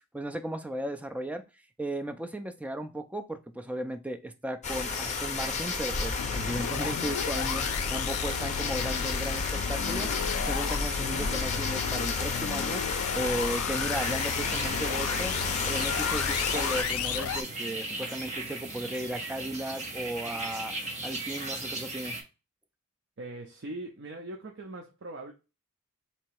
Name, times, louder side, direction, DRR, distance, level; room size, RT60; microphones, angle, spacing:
voice 1, 0.0-1.4 1.8-15.4 15.6-20.7 21.0-22.2, right 1 dB, 5° right, 0.3 m, -36 dB
sound 1, 4.6-16.8, left 4 dB, 30° left, 0.6 m, -31 dB
sound 2, 6.2-17.4, left 8 dB, 75° left, 0.4 m, -34 dB
sound 3, 13.9-22.2, right 2 dB, 30° right, 1.0 m, -37 dB
voice 2, 23.2-25.3, right 2 dB, 55° right, 0.6 m, -41 dB
3.3 x 3.0 x 4.5 m
head